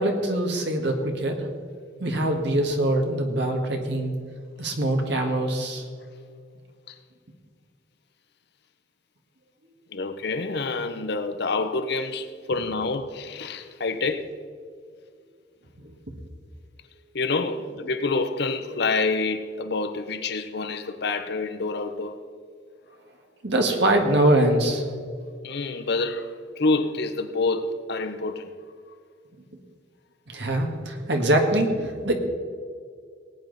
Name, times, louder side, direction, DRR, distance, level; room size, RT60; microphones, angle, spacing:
voice 1, 0.0-1.5 2.0-4.1 4.6-5.8 23.4-24.9 30.3-32.1, right 1 dB, 60° right, 1.7 m, -23 dB
voice 2, 9.9-14.3 17.1-22.2 25.4-28.5, left 3 dB, 60° left, 0.8 m, -27 dB
19.0 x 9.2 x 4.0 m
head